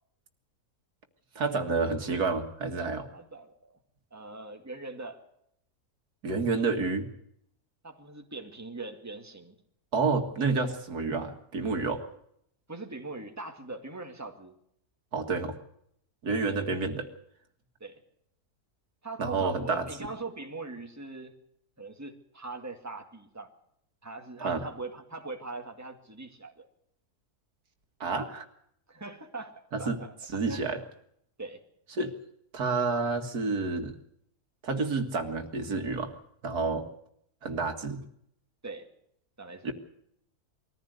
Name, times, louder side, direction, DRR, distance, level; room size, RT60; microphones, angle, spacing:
voice 1, 1.4-3.1 6.2-7.1 9.9-12.0 15.1-15.5 16.2-17.1 19.2-19.9 24.4-24.6 28.0-28.5 29.7-30.0 30.3-30.8 32.0-32.1 32.5-34.0 34.6-36.1 36.4-36.9 37.4-38.0 39.6-39.7, right 4 dB, 80° right, 6 dB, 2.4 m, -29 dB
voice 2, 3.1-3.8 4.1-5.2 7.8-9.6 12.7-14.5 17.8-18.0 19.0-21.3 21.8-23.5 24.0-26.7 28.9-30.1 30.5-30.6 31.4-31.6 38.6-38.9 39.4-39.7, right 3 dB, 10° right, 4 dB, 2.1 m, -41 dB
22.5 x 14.5 x 8.0 m, 0.73 s
omnidirectional pair, 1.6 m